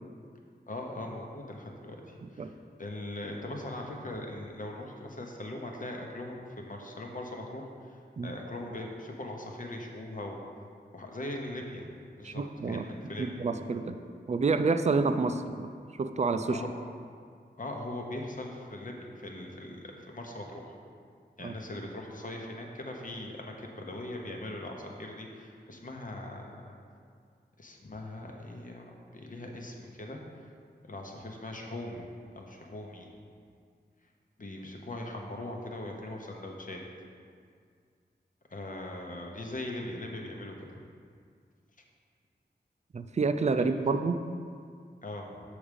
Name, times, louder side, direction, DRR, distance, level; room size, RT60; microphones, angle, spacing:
voice 1, 0.7-2.5 2.8-10.4 10.9-11.9 12.2-12.4 12.7-13.4 16.5-16.7 17.6-20.7 21.4-26.7 27.6-30.2 30.9-32.1 32.3-33.1 34.4-36.8 38.5-40.8 43.6-43.7 45.0-45.4, left 1 dB, 50° left, 1 dB, 1.0 m, -40 dB
voice 2, 12.2-12.9 13.2-14.0 14.3-16.6 21.4-21.5 42.9-44.3, right 4 dB, 40° right, 8 dB, 0.4 m, -28 dB
7.0 x 4.9 x 5.2 m, 2.2 s
wide cardioid pair, 75°, 18 cm